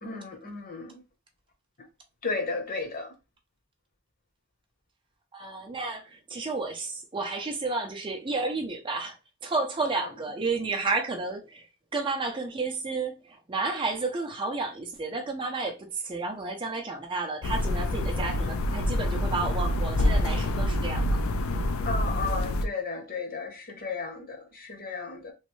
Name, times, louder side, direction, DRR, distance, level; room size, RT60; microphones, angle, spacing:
voice 1, 0.0-1.0 2.2-3.1 21.8-25.3, left 4 dB, 45° left, 0.9 m, -34 dB
voice 2, 5.3-9.2 9.4-21.2, right 3 dB, 25° right, 0.5 m, -31 dB
sound 1, 17.4-22.7, left 1 dB, 70° left, 0.4 m, -27 dB
3.1 x 2.6 x 3.1 m
head